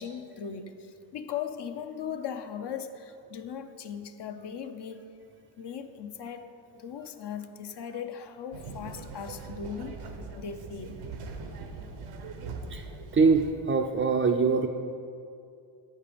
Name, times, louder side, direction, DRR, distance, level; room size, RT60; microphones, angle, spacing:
voice 1, 0.0-5.0 5.6-6.4 6.7-10.0 10.3-11.0, left 7 dB, 55° left, 7 dB, 0.7 m, -38 dB
sound 1, 8.5-13.5, right 4 dB, 80° right, 0.9 m, -41 dB
voice 2, 13.1-14.7, right 4 dB, 25° right, 1 dB, 0.4 m, -23 dB
8.2 x 5.5 x 5.1 m, 2.5 s
supercardioid pair, 60°, 50 cm